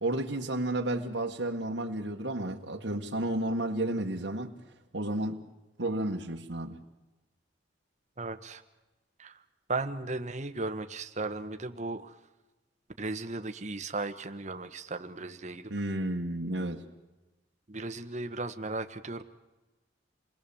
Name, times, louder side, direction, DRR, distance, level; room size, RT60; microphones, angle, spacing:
voice 1, 0.0-4.5 4.9-5.4 5.8-6.8 15.7-16.8, right 1 dB, 75° right, 1.7 m, -32 dB
voice 2, 8.2-8.6 9.2-9.4 9.7-12.1 13.0-15.7 17.7-19.2, right 3 dB, 40° right, 1.3 m, -36 dB
28.5 x 21.0 x 7.1 m
head